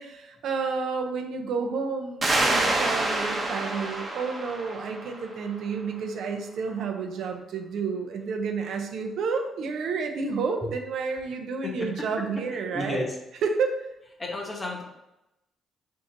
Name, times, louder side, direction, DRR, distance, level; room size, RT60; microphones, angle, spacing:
voice 1, 0.0-13.0 13.4-13.9, right 5 dB, 75° right, 4 dB, 0.5 m, -30 dB
sound 1, 2.2-5.6, right 2 dB, 30° right, 0.9 m, -27 dB
voice 2, 12.7-13.1 14.2-14.8, left 2 dB, 25° left, 0 dB, 1.0 m, -31 dB
4.7 x 2.5 x 3.8 m, 0.91 s
cardioid pair, 90°, 0 cm